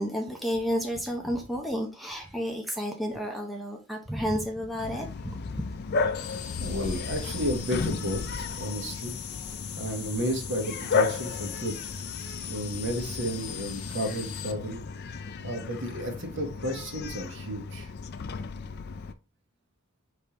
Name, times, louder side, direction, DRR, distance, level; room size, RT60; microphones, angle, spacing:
voice 1, 0.0-5.6, equal, ahead, 0.6 m, -31 dB
Bark, 4.8-19.1, left 4 dB, 50° left, 0.4 m, -34 dB
sound 1, 6.1-14.5, left 10 dB, 90° left, 0.7 m, -40 dB
voice 2, 6.6-9.1 9.7-11.8 12.5-14.8 15.4-17.9, equal, 55° right, 1.2 m, -32 dB
5.2 x 3.4 x 2.9 m
head